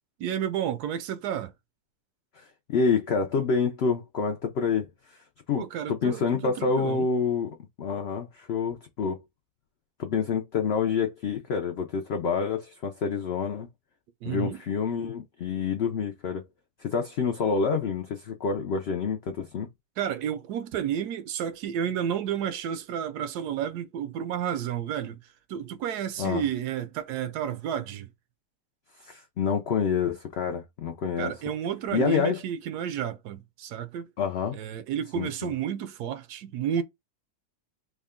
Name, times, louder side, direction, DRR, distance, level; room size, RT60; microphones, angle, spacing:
voice 1, 0.2-1.5 5.5-7.1 14.2-14.6 20.0-25.2 25.5-28.1 31.2-34.0 34.5-36.8, right 9 dB, 80° right, 1.1 m, -31 dB
voice 2, 2.4-5.2 5.5-9.2 10.0-13.7 14.2-16.5 16.8-19.7 26.2-26.5 29.0-31.3 31.9-32.4 34.2-34.6 35.1-35.5, left 5 dB, 85° left, 0.5 m, -28 dB
3.5 x 2.2 x 3.5 m
omnidirectional pair, 1.7 m